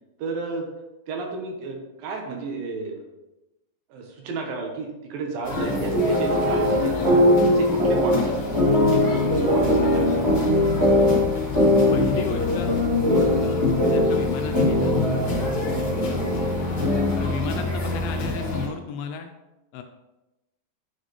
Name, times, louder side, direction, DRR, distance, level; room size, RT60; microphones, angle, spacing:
voice 1, 0.2-0.7 1.1-3.1 3.9-7.0 7.5-8.6 8.9-10.3 15.3-15.9, right 4 dB, 75° right, 2 dB, 2.7 m, -32 dB
sound 1, 5.4-18.7, left 2 dB, 45° left, 1.8 m, -29 dB
sound 2, 5.6-17.3, left 1 dB, 15° right, 1.2 m, -21 dB
voice 2, 11.9-12.8 13.4-14.9 16.7-16.8 17.2-19.3 19.7-19.8, left 6 dB, 80° left, 5 dB, 2.2 m, -33 dB
9.7 x 6.4 x 3.1 m, 0.99 s
omnidirectional pair, 4.3 m